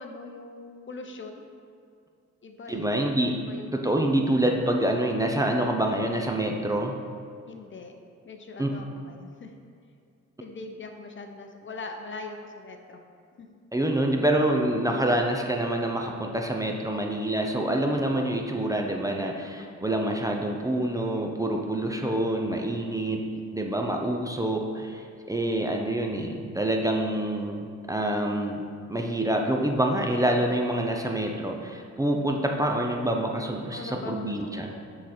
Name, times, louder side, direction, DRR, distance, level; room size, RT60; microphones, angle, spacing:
voice 1, 0.0-1.4 2.4-2.9 3.5-3.9 7.5-7.9 8.2-9.5 10.4-13.0 13.4-13.5 16.9-17.2 19.6-20.0 33.7-35.0, left 3 dB, 40° left, 4 dB, 0.7 m, -41 dB
voice 2, 2.7-3.4 3.7-6.9 8.6-8.7 13.7-23.2 23.5-28.6 28.9-34.7, right 1 dB, 10° right, 1 dB, 0.6 m, -26 dB
9.3 x 3.9 x 4.3 m, 2.4 s
cardioid pair, 85°, 30 cm